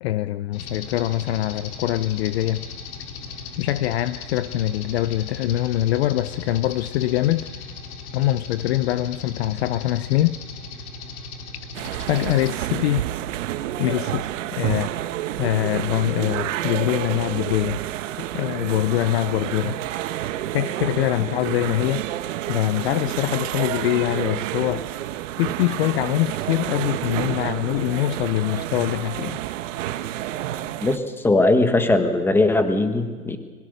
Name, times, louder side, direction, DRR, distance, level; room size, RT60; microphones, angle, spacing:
voice 1, 0.0-2.6 3.6-7.5 8.1-10.4 12.1-13.0 13.8-14.9 15.4-17.8 18.3-19.8 20.5-22.1 22.5-24.8 25.4-29.4, left 14 dB, 45° left, 15 dB, 0.6 m, -23 dB
sound 1, 0.5-12.5, left 4 dB, 65° left, 3.5 m, -37 dB
sound 2, 11.7-31.0, right 13 dB, 55° right, 1.3 m, -29 dB
voice 2, 30.8-33.4, left 2 dB, 5° left, 7 dB, 1.4 m, -19 dB
26.0 x 22.0 x 6.7 m, 1.4 s
hypercardioid pair, 140°, 45 cm